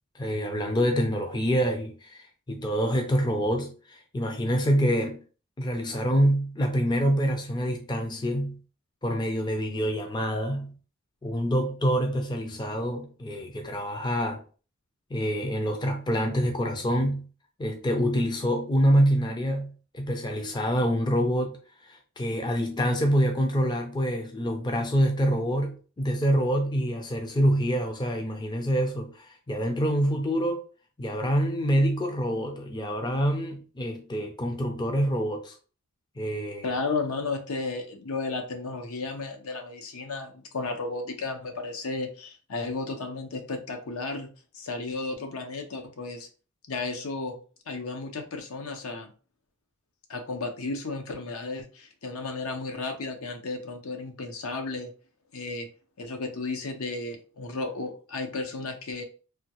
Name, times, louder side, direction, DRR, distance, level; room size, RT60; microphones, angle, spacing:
voice 1, 0.1-5.2 5.6-8.6 9.0-10.8 11.2-14.4 15.1-17.3 17.6-30.6 31.0-35.6 36.2-36.8, equal, 20° left, 0.4 m, -26 dB
voice 2, 36.6-46.3 46.7-47.4 47.7-49.1 50.1-54.9 55.3-55.7 56.0-59.0, left 3 dB, 75° left, 0.7 m, -33 dB
3.4 x 2.3 x 2.9 m
head